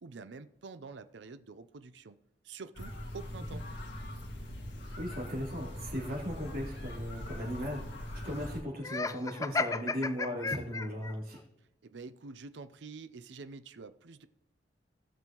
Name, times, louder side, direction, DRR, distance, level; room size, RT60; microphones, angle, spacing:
voice 1, 0.0-2.2 2.4-3.6 11.8-14.3, right 4 dB, 75° right, 11 dB, 0.5 m, -47 dB
sound 1, 2.7-8.6, left 1 dB, 85° left, 1.9 m, -41 dB
voice 2, 5.0-11.4, equal, 55° right, -3 dB, 3.4 m, -37 dB
Laughter, 8.8-11.1, left 4 dB, 20° left, 0.3 m, -33 dB
18.5 x 6.2 x 3.0 m, 0.93 s
head